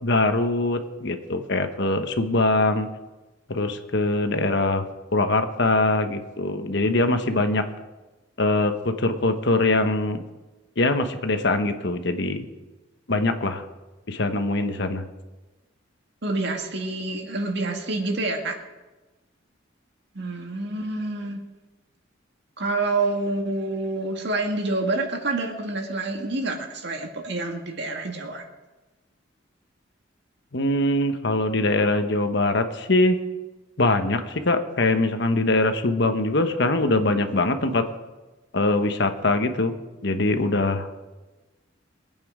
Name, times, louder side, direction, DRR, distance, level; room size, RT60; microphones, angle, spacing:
voice 1, 0.0-2.9 3.5-4.8 5.1-7.6 8.4-10.2 10.8-12.4 13.1-13.7 14.1-15.0 30.5-33.2 33.8-37.8 38.5-39.7 40.0-41.1, left 2 dB, 65° left, 7 dB, 1.2 m, -22 dB
voice 2, 16.2-18.6 20.1-21.4 22.6-28.4, right 2 dB, 60° right, 3 dB, 2.0 m, -27 dB
23.0 x 8.7 x 5.0 m, 1.1 s
head